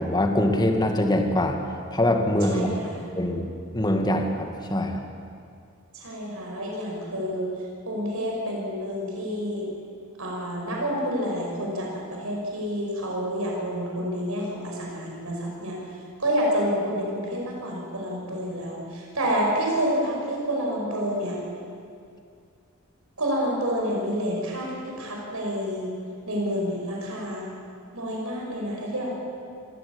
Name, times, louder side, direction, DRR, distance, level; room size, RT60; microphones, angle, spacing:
voice 1, 0.0-1.6 1.9-2.7 3.2-3.5 3.7-5.0, left 1 dB, 20° left, 4 dB, 2.2 m, -23 dB
voice 2, 2.5-3.0 5.9-7.5 7.9-9.7 10.2-15.8 16.2-21.4 23.2-25.9 26.3-27.5 27.9-29.2, equal, 80° right, -1 dB, 5.9 m, -28 dB
26.0 x 15.5 x 8.8 m, 2.4 s
head